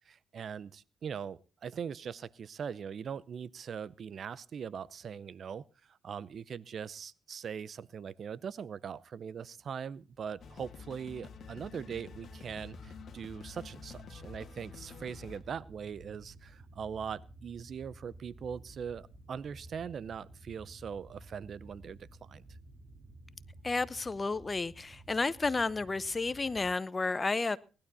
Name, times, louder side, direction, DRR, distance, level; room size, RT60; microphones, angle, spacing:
voice 1, 0.1-22.4, right 7 dB, 55° right, 22 dB, 0.6 m, -41 dB
sound 1, 10.1-26.7, right 2 dB, 35° right, 3.8 m, -54 dB
sound 2, 10.4-15.4, left 7 dB, 55° left, 2.0 m, -49 dB
voice 2, 23.6-27.6, left 3 dB, 25° left, 19 dB, 0.8 m, -31 dB
19.0 x 12.0 x 4.1 m, 0.34 s
cardioid pair, 90°, 0 cm